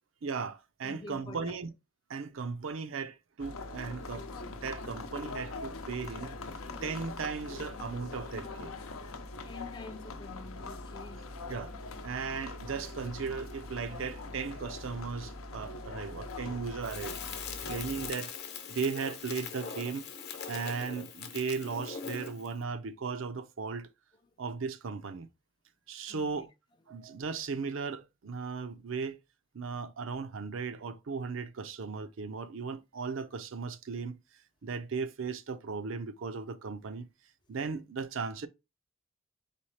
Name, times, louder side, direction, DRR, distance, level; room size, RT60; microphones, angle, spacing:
voice 1, 0.2-1.7 2.1-6.3 6.8-8.8 11.5-11.7 12.0-17.2 17.7-18.3 18.7-20.1 20.5-23.9 24.4-25.3 25.9-26.5 26.9-29.2 29.5-34.2 34.6-37.1 37.5-38.5, right 5 dB, 70° right, 0.5 m, -37 dB
voice 2, 0.8-1.6 3.8-3.9 9.4-11.3 26.1-26.5, left 3 dB, 20° left, 0.3 m, -47 dB
sound 1, 3.4-18.1, left 3 dB, 85° left, 0.7 m, -42 dB
Crackle, 16.8-22.5, left 6 dB, 50° left, 0.8 m, -41 dB
4.2 x 3.3 x 3.2 m
head